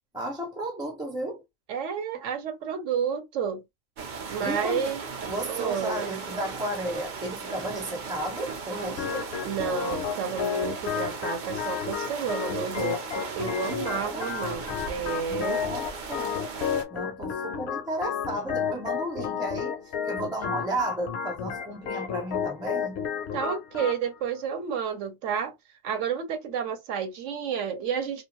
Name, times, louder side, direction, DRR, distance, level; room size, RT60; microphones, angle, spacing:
voice 1, 0.1-1.4 4.4-4.9 5.3-9.3 13.6-14.3 15.3-16.4 16.9-19.8 20.1-23.0, right 1 dB, 5° right, 0.4 m, -33 dB
voice 2, 1.7-3.6 4.3-5.0 5.5-6.1 9.4-15.6 23.3-25.5 25.8-28.3, right 7 dB, 70° right, 1.0 m, -30 dB
sound 1, 4.0-16.8, right 5 dB, 55° right, 0.5 m, -37 dB
Organ, 9.0-24.0, left 7 dB, 65° left, 0.7 m, -32 dB
2.4 x 2.2 x 2.9 m
omnidirectional pair, 1.4 m